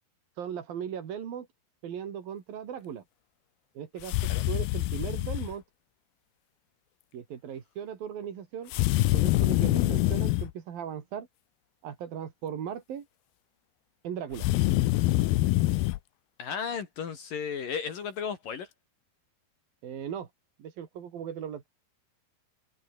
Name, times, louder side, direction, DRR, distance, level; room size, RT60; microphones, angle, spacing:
voice 1, 0.4-1.5 1.8-3.0 3.8-4.2 4.5-5.6 7.1-8.7 9.0-11.3 11.8-13.1 14.0-14.5 19.8-20.3 20.6-21.7, right 8 dB, 65° right, 4.3 m, -38 dB
sound 1, 4.0-5.5 8.7-10.5 14.3-16.0, left 17 dB, 80° left, 2.6 m, -25 dB
voice 2, 16.4-18.7, left 7 dB, 60° left, 4.0 m, -34 dB
omnidirectional pair, 4.6 m